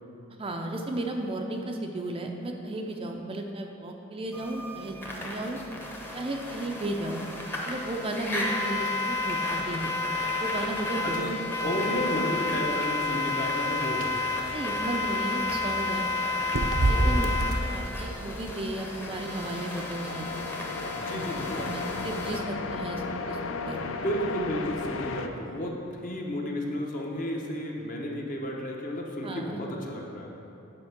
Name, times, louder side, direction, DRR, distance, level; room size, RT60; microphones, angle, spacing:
voice 1, 0.4-5.6 6.1-7.2 7.7-11.3 14.5-16.1 16.9-17.3 17.7-20.6 21.6-23.8 29.2-29.6, right 1 dB, 25° right, 2 dB, 0.5 m, -34 dB
sound 1, 4.3-22.4, left 3 dB, 10° left, 0.8 m, -32 dB
sound 2, 9.1-17.6, right 2 dB, 70° right, 0.6 m, -31 dB
voice 2, 11.6-14.2 16.8-17.3 21.0-21.7 23.8-30.3, equal, 40° left, -1 dB, 1.0 m, -32 dB
sound 3, 15.1-25.3, left 4 dB, 70° left, 0.5 m, -37 dB
8.8 x 4.4 x 5.8 m, 2.9 s
head